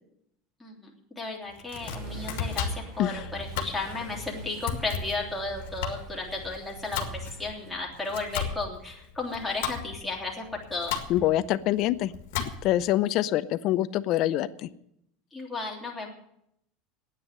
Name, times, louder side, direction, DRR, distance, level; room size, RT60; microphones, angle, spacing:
voice 1, 1.2-2.7 3.0-11.0 15.3-16.1, left 3 dB, 5° left, -2 dB, 3.2 m, -34 dB
Domestic sounds home sounds, 1.5-12.9, left 8 dB, 75° left, 2.0 m, -36 dB
sound 1, 1.8-7.7, right 3 dB, 45° right, 3.6 m, -42 dB
voice 2, 11.1-12.1 12.6-14.7, left 14 dB, 50° left, 16 dB, 0.6 m, -25 dB
9.7 x 9.2 x 10.0 m, 0.76 s
supercardioid pair, 130°, 0 cm